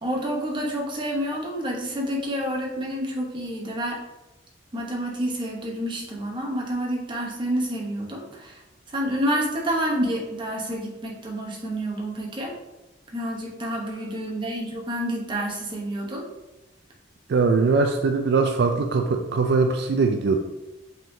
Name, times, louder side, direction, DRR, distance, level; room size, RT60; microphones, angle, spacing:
voice 1, 0.0-4.0 4.7-8.6 8.9-12.6 13.1-16.3, equal, 25° right, -1 dB, 0.9 m, -28 dB
voice 2, 17.3-20.4, right 4 dB, 60° right, 4 dB, 0.3 m, -21 dB
5.2 x 3.6 x 2.6 m, 1.0 s
head